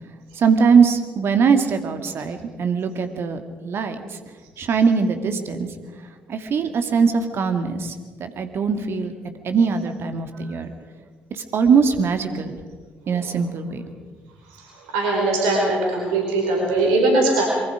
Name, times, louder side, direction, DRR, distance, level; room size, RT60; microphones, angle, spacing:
voice 1, 0.4-4.0 4.6-5.7 6.3-10.7 11.3-12.6 13.1-13.9, right 5 dB, 50° right, 7 dB, 2.3 m, -21 dB
voice 2, 14.9-17.5, right 2 dB, 70° right, -1 dB, 4.5 m, -20 dB
25.0 x 23.5 x 5.1 m, 1.4 s
figure-of-eight pair, 45°, 5 cm